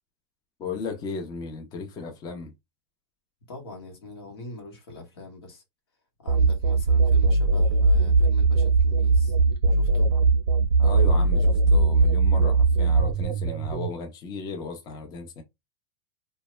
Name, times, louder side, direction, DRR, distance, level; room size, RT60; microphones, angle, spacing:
voice 1, 0.6-2.5 10.8-15.4, left 4 dB, 30° left, 0.6 m, -35 dB
voice 2, 3.5-5.6 6.2-9.4 9.8-10.1, left 2 dB, 85° left, 1.1 m, -43 dB
sound 1, 6.3-13.9, right 3 dB, 80° right, 0.4 m, -20 dB
2.2 x 2.0 x 3.0 m
hypercardioid pair, 115°, 13 cm